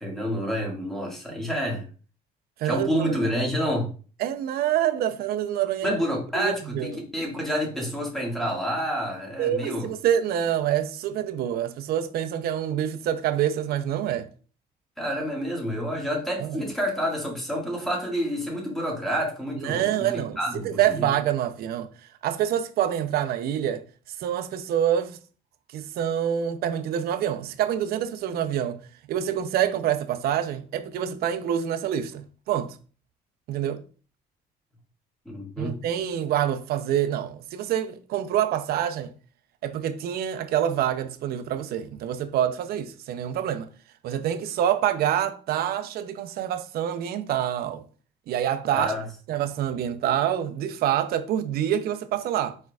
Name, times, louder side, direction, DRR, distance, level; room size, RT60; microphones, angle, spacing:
voice 1, 0.0-1.8 2.6-3.9 5.8-9.9 15.0-21.1 35.3-35.8 48.7-49.1, equal, ahead, 1.7 m, -28 dB
voice 2, 2.6-3.1 4.2-6.0 6.3-7.0 9.4-14.3 16.4-16.6 19.6-20.4 20.6-21.9 22.2-23.8 24.2-25.2 25.7-28.8 29.1-32.8 33.5-33.8 35.6-39.1 39.6-43.7 44.0-47.8 48.3-48.9 49.3-52.6, right 10 dB, 65° right, 0.5 m, -26 dB
4.4 x 4.4 x 2.3 m
cardioid pair, 110°, 17 cm